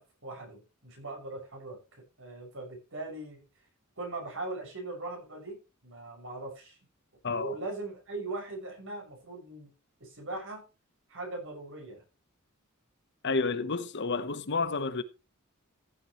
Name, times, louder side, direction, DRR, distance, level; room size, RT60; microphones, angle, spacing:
voice 1, 0.0-1.8 2.2-3.5 4.0-6.8 7.3-9.7 10.0-10.7 11.1-12.0, right 2 dB, 65° right, 6.5 m, -40 dB
voice 2, 7.2-7.6 13.2-15.0, left 4 dB, 55° left, 1.0 m, -30 dB
15.0 x 8.7 x 3.1 m
head